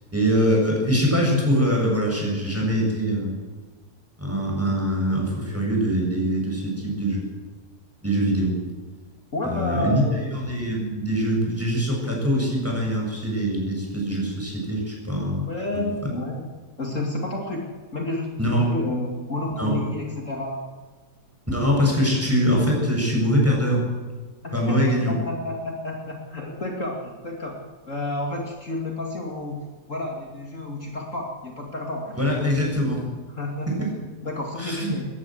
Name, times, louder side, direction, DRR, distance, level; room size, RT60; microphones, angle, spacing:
voice 1, 0.1-3.4 4.2-7.2 8.0-8.6 9.4-10.0 10.3-15.5 15.7-15.9 18.4-18.8 19.6-19.8 21.5-23.8 24.5-25.2 32.1-33.0 33.8-33.9 34.6-34.9, equal, 10° right, -1 dB, 7.8 m, -23 dB
voice 2, 9.3-10.4 15.5-16.5 16.8-20.7 24.4-32.5 33.3-33.9 34.2-35.1, left 2 dB, 50° left, 1 dB, 2.9 m, -31 dB
21.0 x 19.0 x 7.9 m, 1.4 s
omnidirectional pair, 1.8 m